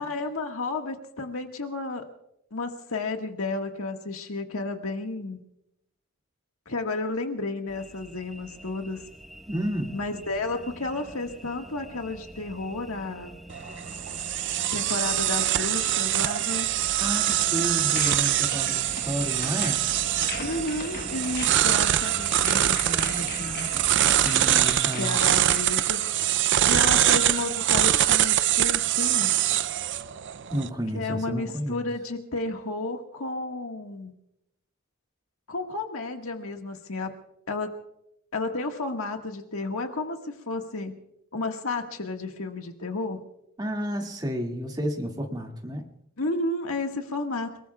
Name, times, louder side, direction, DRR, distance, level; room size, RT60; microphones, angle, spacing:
voice 1, 0.0-2.1 2.5-5.4 6.7-9.1 9.9-13.3 14.7-16.7 20.4-23.7 25.0-26.0 26.7-29.4 30.9-34.1 35.5-37.2 37.5-37.7 38.3-41.0 41.3-43.3 46.2-47.5, left 2 dB, 75° left, 3 dB, 1.7 m, -32 dB
sound 1, 7.7-24.7, equal, ahead, 1.1 m, -44 dB
voice 2, 9.5-10.0 17.0-19.9 24.1-25.2 30.5-31.8 43.6-45.9, equal, 20° right, 1 dB, 2.2 m, -31 dB
sound 2, 13.5-30.7, right 12 dB, 55° right, 0.5 m, -24 dB
sound 3, 17.2-25.7, left 5 dB, 45° left, 1.3 m, -40 dB
30.0 x 20.0 x 2.4 m, 0.81 s
head